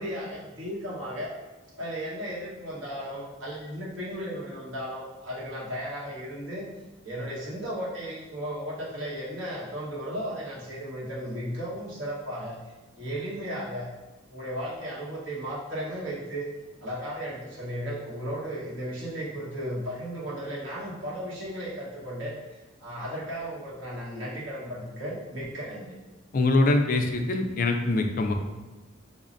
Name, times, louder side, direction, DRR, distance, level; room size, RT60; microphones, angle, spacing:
voice 1, 0.0-1.3 1.8-6.7 7.0-13.9 14.3-16.5 16.8-26.0, equal, 70° right, -7 dB, 1.2 m, -35 dB
voice 2, 26.3-28.3, left 2 dB, 45° left, 5 dB, 0.4 m, -23 dB
5.6 x 2.0 x 2.5 m, 1.1 s
head